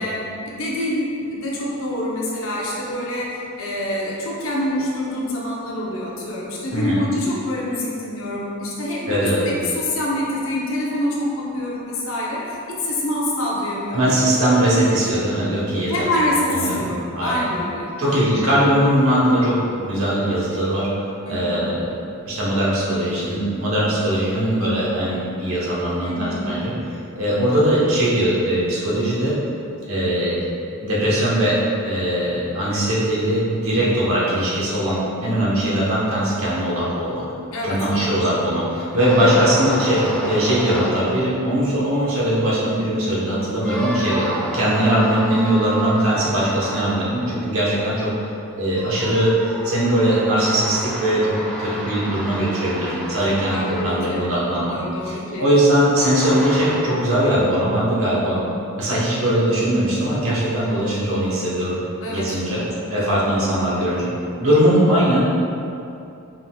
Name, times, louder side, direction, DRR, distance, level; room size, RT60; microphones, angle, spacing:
voice 1, 0.0-14.2 15.9-18.5 21.2-21.7 26.0-26.8 37.5-38.3 38.9-39.1 53.3-54.3 54.6-55.4 58.3-58.5 62.0-63.8, left 1 dB, 65° left, -4 dB, 0.8 m, -26 dB
voice 2, 9.1-9.4 13.9-16.1 16.4-16.8 17.1-17.4 18.0-20.9 21.3-22.0 22.2-29.4 29.9-30.4 30.8-37.2 37.6-44.3 44.5-48.1 48.6-49.3 49.6-54.7 55.1-58.4 58.8-61.8 62.1-62.6 62.9-64.1 64.4-65.3, right 1 dB, 70° right, -7 dB, 1.1 m, -20 dB
sound 1, 39.0-41.5 42.3-42.4 43.6-48.2 48.6-54.4 56.0-57.0, equal, 5° left, 0.4 m, -30 dB
5.1 x 3.6 x 2.4 m, 2.7 s
head